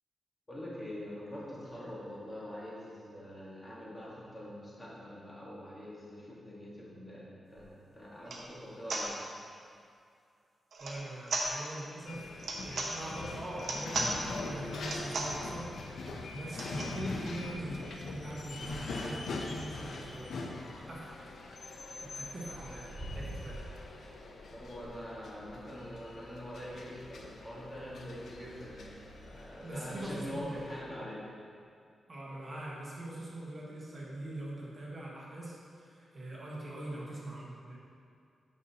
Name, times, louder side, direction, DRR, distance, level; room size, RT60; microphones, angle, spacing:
voice 1, 0.5-9.2 24.2-31.2, equal, 20° left, -7 dB, 1.5 m, -44 dB
sound 1, 7.6-7.7 8.2-8.5 8.9-9.1 10.7-11.0 11.3-11.5 12.4-12.9 13.6-14.1 14.8-15.4 16.5-17.0 17.5-17.6 17.8-17.9 18.2-19.7, right 2 dB, 60° right, 0.9 m, -37 dB
voice 2, 10.8-12.3 12.6-15.7 16.3-20.3 20.8-21.1 22.0-23.6 29.6-30.5 32.1-37.8, right 1 dB, 35° right, -5 dB, 1.3 m, -42 dB
sound 2, 12.1-30.8, left 3 dB, 65° left, 0.6 m, -43 dB
sound 3, 16.4-16.7 17.2-19.0 21.2-21.5 22.2-22.3 22.4-23.9, right 1 dB, 10° right, 1.7 m, -46 dB
8.7 x 5.5 x 2.8 m, 2.3 s
wide cardioid pair, 125°, 0 cm